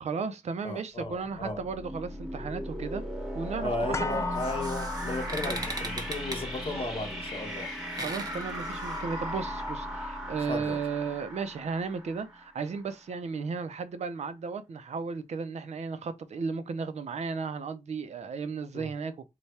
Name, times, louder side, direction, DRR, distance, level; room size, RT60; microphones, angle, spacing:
voice 1, 0.0-3.0 3.3-4.2 5.3-5.5 7.9-19.3, right 5 dB, 55° right, 0.5 m, -35 dB
voice 2, 0.6-1.6 3.6-7.7 10.5-10.8 18.7-18.9, left 2 dB, 45° left, 0.8 m, -35 dB
sound 1, 1.1-12.7, equal, 5° right, 1.0 m, -37 dB
sound 2, 3.9-12.0 12.3-12.4, left 4 dB, 20° left, 0.4 m, -41 dB
sound 3, 4.1-9.7, right 2 dB, 30° right, 0.8 m, -41 dB
3.3 x 2.2 x 4.1 m
wide cardioid pair, 115°, 14 cm